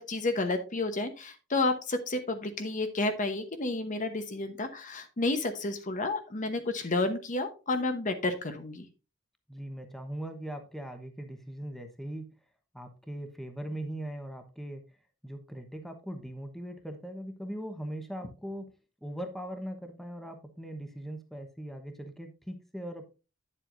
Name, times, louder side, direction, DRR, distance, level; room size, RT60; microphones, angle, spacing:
voice 1, 0.0-8.9, left 2 dB, 40° left, 8 dB, 1.0 m, -31 dB
voice 2, 9.5-12.3 12.7-14.8 15.2-18.7 19.0-23.0, right 1 dB, ahead, 5 dB, 1.0 m, -40 dB
9.8 x 7.5 x 2.6 m, 0.30 s
head